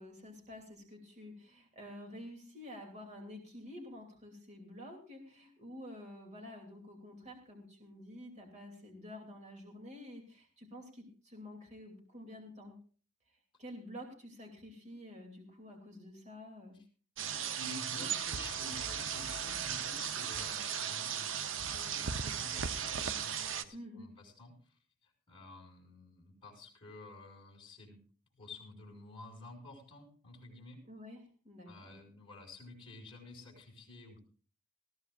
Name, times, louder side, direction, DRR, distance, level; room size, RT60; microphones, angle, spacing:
voice 1, 0.0-12.8 13.6-16.8 23.7-24.1 30.9-32.0, left 1 dB, 35° right, 2 dB, 2.7 m, -49 dB
sound 1, 17.2-23.6, right 7 dB, 70° right, 0.8 m, -36 dB
voice 2, 17.3-28.0 28.3-30.8 31.7-34.3, left 2 dB, 25° left, 0 dB, 5.5 m, -51 dB
20.0 x 14.5 x 2.5 m, 0.39 s
head